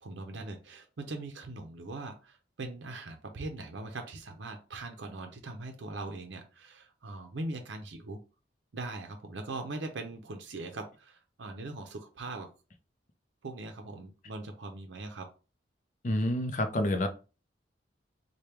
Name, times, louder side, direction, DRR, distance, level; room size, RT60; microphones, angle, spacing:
voice 1, 0.0-8.2 8.7-12.5 13.4-15.3, right 2 dB, 75° right, 4 dB, 0.6 m, -41 dB
voice 2, 16.0-17.1, left 1 dB, 40° left, 7 dB, 0.5 m, -28 dB
3.3 x 2.2 x 4.4 m, 0.33 s
head